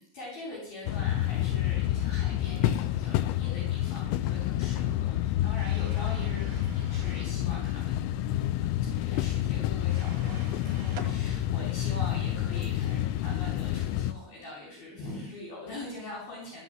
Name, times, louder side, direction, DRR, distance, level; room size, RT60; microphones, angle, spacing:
voice 1, 0.0-16.6, left 1 dB, 55° left, -4 dB, 5.1 m, -43 dB
sound 1, 0.9-14.1, left 13 dB, 80° left, 2.8 m, -29 dB
sound 2, 5.6-7.4 9.8-11.1, right 6 dB, 55° right, 2.5 m, -47 dB
13.5 x 6.9 x 7.6 m, 0.62 s
omnidirectional pair, 5.2 m